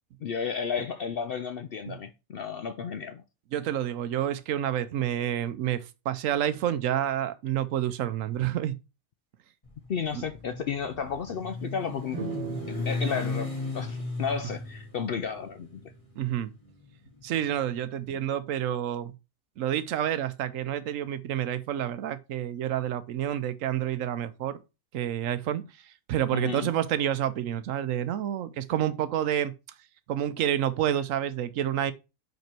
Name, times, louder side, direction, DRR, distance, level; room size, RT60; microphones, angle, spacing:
voice 1, 0.2-3.2 9.9-12.2 12.7-15.8 26.3-26.7, left 6 dB, 65° left, 0.6 m, -33 dB
voice 2, 3.5-8.8 10.1-10.2 16.2-16.5 17.2-19.1 19.6-24.6 24.9-29.5 30.1-31.9, right 11 dB, 75° right, 1.0 m, -29 dB
Motorcycle, 9.6-17.8, left 3 dB, 25° left, 1.7 m, -36 dB
sound 1, 12.1-15.7, right 6 dB, 55° right, 1.3 m, -40 dB
5.3 x 5.1 x 4.5 m
omnidirectional pair, 1.4 m